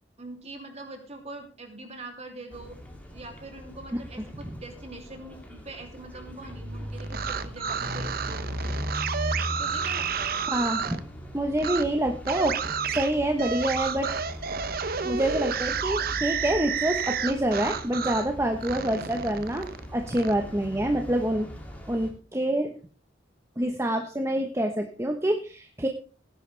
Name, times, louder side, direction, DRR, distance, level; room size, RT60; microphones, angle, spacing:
voice 1, 0.2-2.8 3.1-8.4 9.6-10.5, right 2 dB, 35° right, 3 dB, 3.0 m, -43 dB
sound 1, 2.5-22.1, equal, 10° left, 2.7 m, -39 dB
sound 2, 7.0-11.0 11.6-11.8 12.2-18.3 18.6-20.3, right 6 dB, 55° right, 0.8 m, -31 dB
voice 2, 10.5-11.0 11.3-12.6 12.9-14.1 15.0-21.5 21.9-22.7 23.6-25.9, right 1 dB, 15° right, 4 dB, 1.1 m, -27 dB
17.0 x 10.5 x 3.4 m, 0.36 s
head